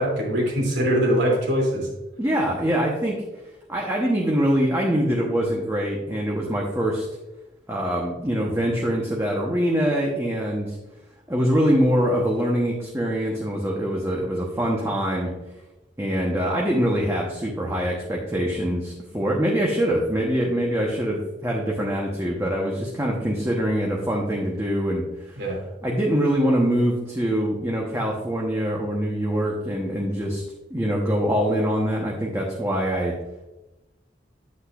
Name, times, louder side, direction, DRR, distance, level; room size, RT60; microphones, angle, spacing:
voice 1, 0.0-1.9 25.4-25.6, equal, 85° right, -2 dB, 2.8 m, -22 dB
voice 2, 2.2-3.2 3.7-7.1 7.7-10.8 11.3-15.3 16.0-25.4 25.8-30.4 30.7-33.2, equal, 15° right, -3 dB, 1.0 m, -24 dB
8.6 x 8.2 x 2.5 m, 1.0 s
head